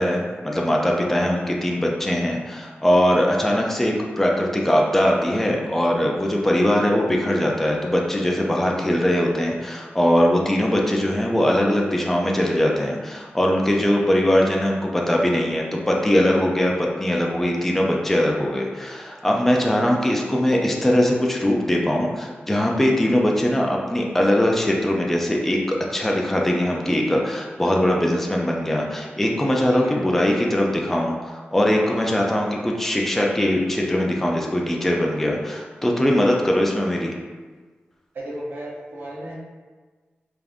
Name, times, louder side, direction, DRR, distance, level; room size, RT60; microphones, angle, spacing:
voice 1, 0.0-37.1, left 1 dB, 5° left, -1 dB, 0.4 m, -21 dB
voice 2, 38.1-39.3, right 1 dB, 65° right, -5 dB, 0.9 m, -35 dB
3.4 x 2.5 x 3.5 m, 1.4 s
wide cardioid pair, 165°, 4 cm